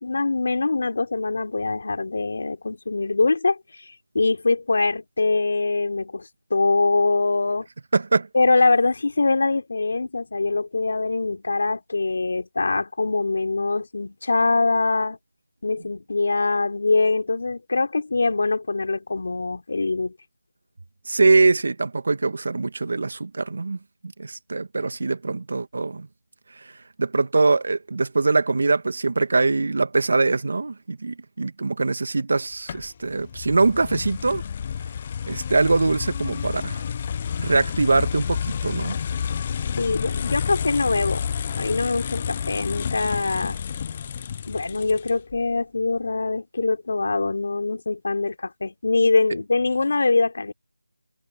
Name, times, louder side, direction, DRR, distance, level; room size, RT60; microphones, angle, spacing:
voice 1, 0.0-7.7 8.3-15.2 15.6-20.1 39.8-41.2 41.6-43.6 44.5-50.5, left 3 dB, 50° left, 3.5 m, -23 dB
voice 2, 7.9-8.3 21.1-23.8 24.2-26.1 27.0-34.4 35.3-36.8 37.4-39.0, right 3 dB, 50° right, 1.7 m, -22 dB
sound 1, 32.7-45.4, left 7 dB, 20° left, 0.3 m, -30 dB
figure-of-eight pair, 170°, 0 cm